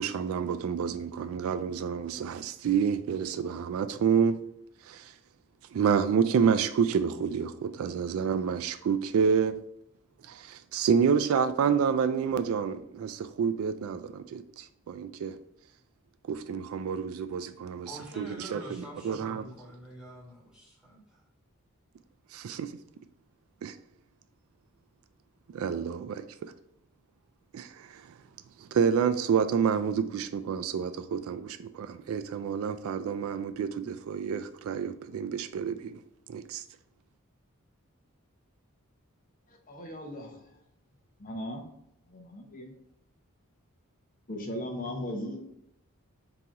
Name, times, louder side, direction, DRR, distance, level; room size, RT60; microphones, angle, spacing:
voice 1, 0.0-4.4 4.9-5.1 5.7-9.6 10.3-15.3 16.3-19.4 22.3-22.7 23.6-23.7 25.5-26.5 27.5-28.1 28.6-36.0 36.3-36.6, right 6 dB, 70° right, 0.3 m, -29 dB
voice 2, 17.8-21.2, right 1 dB, 5° right, 1.5 m, -45 dB
voice 3, 39.7-40.6 41.2-41.6 42.1-42.7 44.3-45.4, left 1 dB, 35° left, 0.7 m, -37 dB
3.9 x 2.8 x 4.7 m
head